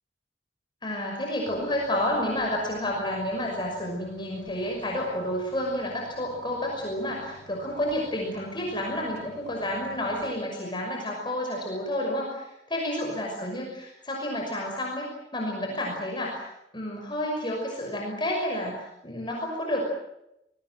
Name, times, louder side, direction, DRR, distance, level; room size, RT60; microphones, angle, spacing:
voice 1, 0.8-16.5 16.7-19.9, left 1 dB, 25° left, 0 dB, 5.9 m, -30 dB
sound 1, 1.5-10.2, equal, 70° left, 7.2 m, -52 dB
29.5 x 21.5 x 7.8 m, 0.84 s
head